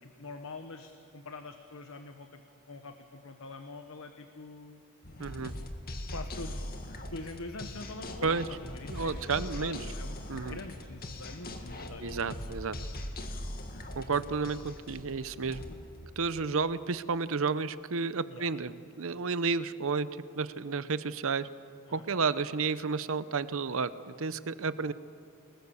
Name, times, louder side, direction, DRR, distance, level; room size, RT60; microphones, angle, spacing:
voice 1, 0.0-4.8 6.1-12.4 14.0-14.2 18.3-18.5 21.9-22.2, left 2 dB, 65° left, 7 dB, 1.2 m, -45 dB
sound 1, 5.0-16.7, left 1 dB, 45° left, 2.1 m, -41 dB
voice 2, 5.2-5.5 8.2-8.5 8.9-9.8 10.3-10.6 12.0-12.8 13.9-15.6 16.2-20.1 20.4-21.5 21.9-24.9, right 4 dB, 65° right, 14 dB, 0.8 m, -31 dB
29.5 x 20.0 x 7.1 m, 2.3 s
head